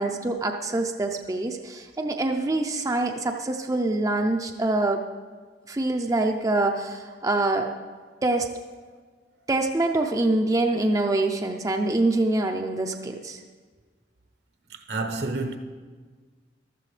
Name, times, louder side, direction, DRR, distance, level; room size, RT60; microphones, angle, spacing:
voice 1, 0.0-5.0 5.7-7.7 8.2-8.5 9.5-13.4, right 2 dB, 20° right, 0.5 m, -25 dB
voice 2, 14.7-15.6, right 3 dB, 65° right, 1.0 m, -29 dB
14.5 x 12.5 x 3.3 m
head